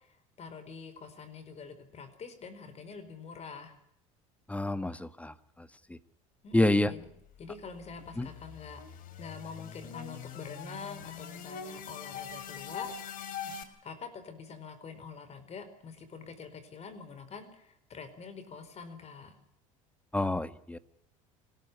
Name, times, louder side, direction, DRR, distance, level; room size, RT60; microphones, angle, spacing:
voice 1, 0.0-3.8 6.4-7.1 7.4-8.8 9.2-19.4, left 5 dB, 40° left, 11 dB, 4.7 m, -46 dB
voice 2, 4.5-6.0 6.5-6.9 8.2-8.3 20.1-20.8, left 1 dB, 10° left, 13 dB, 1.4 m, -29 dB
sound 1, 7.2-13.6, left 7 dB, 55° left, 3.5 m, -43 dB
26.0 x 13.5 x 9.6 m, 0.69 s
hypercardioid pair, 85°, 17 cm